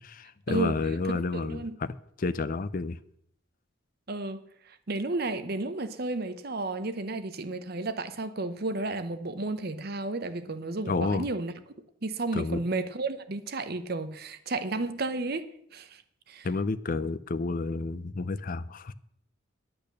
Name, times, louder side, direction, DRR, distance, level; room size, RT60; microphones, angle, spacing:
voice 1, 0.0-3.0 10.9-11.3 12.3-12.6 16.4-18.9, left 3 dB, 45° left, 0.5 m, -30 dB
voice 2, 1.1-1.7 4.1-11.5 12.0-15.5 15.7-16.0 16.3-16.5, right 2 dB, 50° right, 0.8 m, -32 dB
10.5 x 8.8 x 6.7 m
head